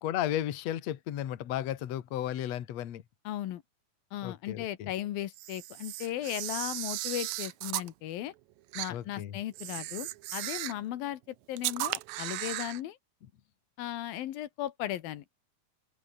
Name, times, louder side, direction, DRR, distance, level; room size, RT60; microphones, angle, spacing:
voice 1, 0.0-3.0 4.2-4.9 8.9-9.4, left 12 dB, 55° left, 2.4 m, -34 dB
voice 2, 3.2-3.6 4.1-8.3 8.7-13.0 13.8-15.2, left 13 dB, 80° left, 3.1 m, -36 dB
Camera, 5.3-7.9 8.7-8.9 9.5-10.8 11.6-12.8, right 17 dB, 80° right, 1.7 m, -36 dB
omnidirectional pair, 4.1 m